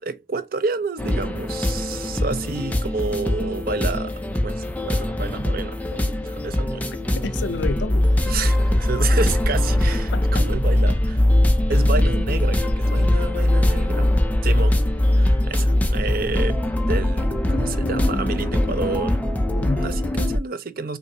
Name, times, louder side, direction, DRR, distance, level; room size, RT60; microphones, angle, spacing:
voice 1, 0.0-6.9 8.3-11.2 11.7-14.1 14.4-14.8 15.2-16.6 16.9-19.2 19.8-21.0, right 4 dB, 50° right, 0.6 m, -29 dB
sound 1, 1.0-20.4, left 1 dB, 10° left, 0.5 m, -21 dB
voice 2, 7.2-8.4 10.1-10.5 11.7-11.8 19.5-20.0, left 4 dB, 80° left, 0.5 m, -30 dB
5.4 x 2.7 x 2.7 m
head